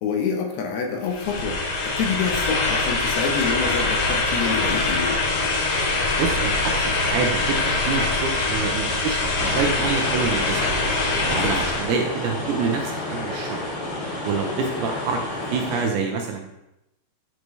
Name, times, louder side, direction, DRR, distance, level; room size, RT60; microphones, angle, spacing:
voice 1, 0.0-5.2 11.3-11.6, left 6 dB, 75° left, 2 dB, 2.9 m, -27 dB
sound 1, 1.1-11.9, left 3 dB, 90° left, 4.0 m, -23 dB
voice 2, 6.2-10.7 11.3-13.6 14.2-16.5, right 5 dB, 75° right, 3 dB, 2.5 m, -27 dB
sound 2, 9.4-15.8, left 2 dB, 40° left, 2.7 m, -31 dB
10.5 x 6.6 x 3.2 m, 0.90 s
omnidirectional pair, 5.1 m